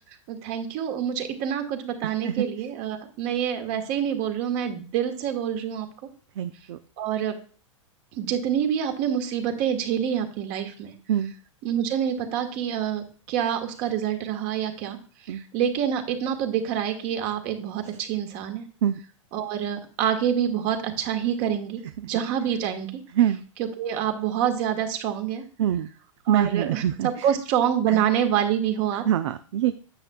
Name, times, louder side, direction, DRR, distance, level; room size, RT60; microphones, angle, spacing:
voice 1, 0.1-5.9 7.0-7.4 8.1-10.9 11.6-18.6 19.3-22.9 23.6-25.4 26.3-29.0, right 9 dB, 45° right, 5 dB, 1.7 m, -27 dB
voice 2, 6.4-6.8 11.1-11.3 15.3-15.4 18.8-19.0 23.2-23.4 25.6-25.9 26.3-27.1 27.9-28.0 29.1-29.7, right 10 dB, 65° right, 10 dB, 0.6 m, -24 dB
9.6 x 7.7 x 2.4 m, 0.41 s
hypercardioid pair, 105°, 17 cm